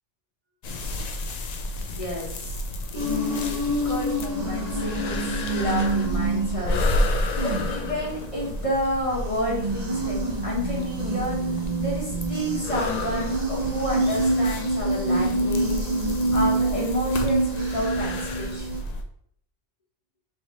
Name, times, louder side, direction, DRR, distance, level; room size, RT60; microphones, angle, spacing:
sound 1, 0.6-19.0, left 1 dB, 75° left, 0.3 m, -31 dB
voice 1, 1.8-2.6 2.9-15.8 16.3-18.8, left 1 dB, 30° left, -4 dB, 1.1 m, -31 dB
sound 2, 2.9-8.6 9.2-18.8, right 2 dB, 40° right, 0.7 m, -27 dB
4.1 x 3.2 x 3.0 m, 0.66 s
omnidirectional pair, 1.2 m